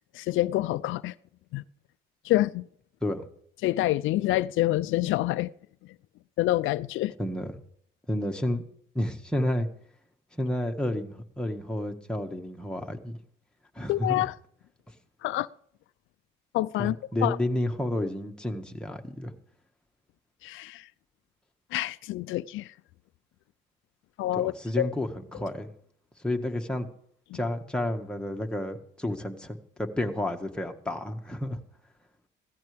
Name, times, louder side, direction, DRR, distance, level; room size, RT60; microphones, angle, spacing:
voice 1, 0.1-1.1 1.5-1.6 2.2-2.6 3.6-5.5 6.4-7.1 13.9-14.3 15.2-15.5 16.5-17.0 17.2-17.4 20.4-20.8 21.7-22.7 24.2-24.9 27.3-27.4, left 16 dB, 85° left, 0.4 m, -27 dB
voice 2, 7.2-7.6 8.1-8.6 9.0-9.7 10.3-13.2 13.8-14.3 16.8-19.4 24.3-25.7 26.2-26.9 27.3-31.6, left 1 dB, 5° left, 1.7 m, -31 dB
16.5 x 13.5 x 3.4 m
cardioid pair, 90°, 20 cm